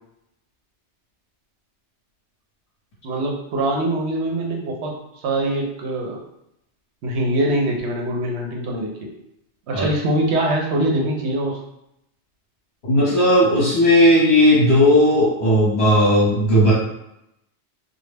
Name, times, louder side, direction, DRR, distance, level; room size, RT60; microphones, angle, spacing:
voice 1, 3.0-6.2 7.0-9.1 9.7-11.6, right 1 dB, 75° right, 0 dB, 0.9 m, -23 dB
voice 2, 12.9-16.7, equal, 60° left, -8 dB, 1.0 m, -15 dB
2.3 x 2.0 x 3.2 m, 0.80 s
omnidirectional pair, 1.2 m